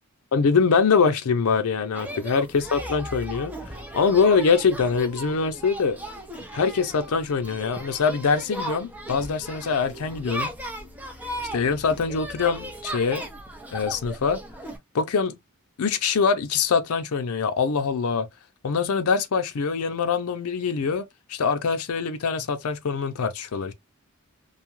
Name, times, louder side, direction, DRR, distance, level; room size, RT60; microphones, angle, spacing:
voice 1, 0.3-3.5 3.9-6.0 6.5-10.5 11.5-13.3 13.7-14.4 14.9-15.3 15.8-18.3 18.6-21.0 21.3-23.7, left 5 dB, 85° left, 0.5 m, -23 dB
sound 1, 1.9-14.8, equal, 5° right, 0.5 m, -37 dB
2.6 x 2.3 x 2.9 m
head